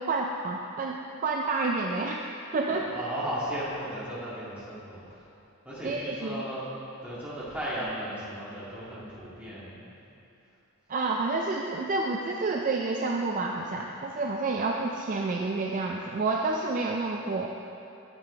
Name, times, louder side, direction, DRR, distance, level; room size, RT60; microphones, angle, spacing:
voice 1, 0.0-2.2 2.5-2.8 5.8-6.4 10.9-17.5, right 3 dB, 35° right, 0 dB, 0.3 m, -29 dB
voice 2, 2.6-5.3 5.6-6.7 7.0-9.9, equal, 5° right, -10 dB, 2.1 m, -36 dB
9.5 x 8.4 x 3.3 m, 2.9 s
head